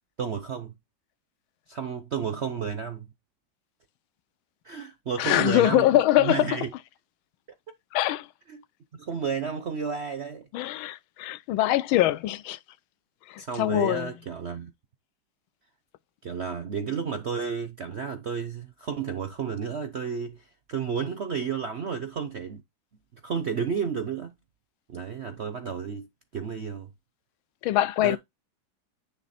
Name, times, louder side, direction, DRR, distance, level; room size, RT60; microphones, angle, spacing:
voice 1, 0.2-0.7 1.7-3.1 4.6-5.9 6.1-6.7 8.5-8.6 8.9-10.5 13.4-14.7 16.2-22.6 23.2-24.3 24.9-26.1 26.3-26.9 28.0-28.2, right 6 dB, 65° right, 0.6 m, -32 dB
voice 2, 5.2-6.5 7.9-8.3 10.5-12.6 13.3-14.1 27.6-28.2, left 14 dB, 85° left, 1.4 m, -23 dB
9.7 x 3.4 x 4.2 m
omnidirectional pair, 2.2 m